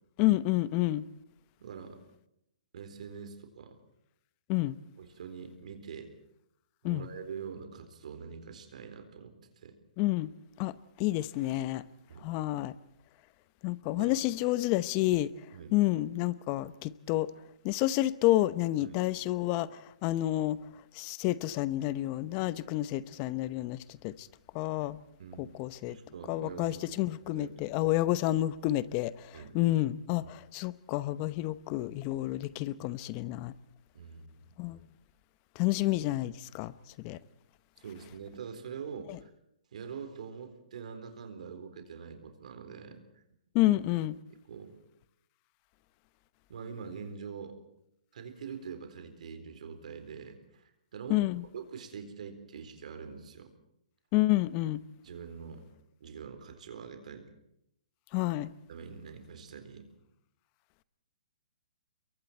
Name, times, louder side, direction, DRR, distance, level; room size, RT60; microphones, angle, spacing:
voice 1, 0.2-1.0 4.5-4.8 6.8-7.0 10.0-10.3 10.6-11.8 12.2-12.7 13.6-15.3 15.7-17.3 17.6-20.6 20.9-24.3 24.5-25.0 25.4-26.0 26.3-33.5 34.6-34.8 35.6-37.2 39.1-39.2 43.5-44.1 51.1-51.4 54.1-54.8 58.1-58.5, left 16 dB, 30° left, 0.9 m, -29 dB
voice 2, 1.6-2.0 2.7-3.8 5.0-6.1 6.8-9.8 12.1-12.3 13.9-14.2 15.5-15.8 18.8-19.0 25.2-25.6 25.9-27.8 29.3-29.6 30.2-30.3 33.9-34.5 37.8-39.3 39.7-43.2 43.7-43.8 44.5-44.7 46.5-47.6 48.1-51.2 51.5-53.5 55.0-55.7 56.0-57.3 58.7-59.9, right 6 dB, 65° right, 4.1 m, -44 dB
27.5 x 23.0 x 4.5 m
hypercardioid pair, 145°, 4 cm